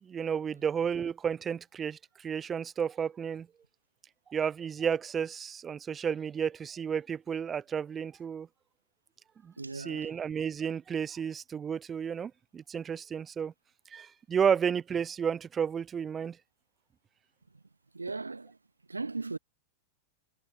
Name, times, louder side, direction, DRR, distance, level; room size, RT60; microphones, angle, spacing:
voice 1, 0.0-3.5 4.3-8.5 9.4-13.5 13.9-16.4, right 7 dB, 20° right, 0.7 m, -32 dB
voice 2, 9.6-10.1 17.9-18.6 18.9-19.4, right 3 dB, 80° right, 1.0 m, -37 dB
figure-of-eight pair, 90°, 0 cm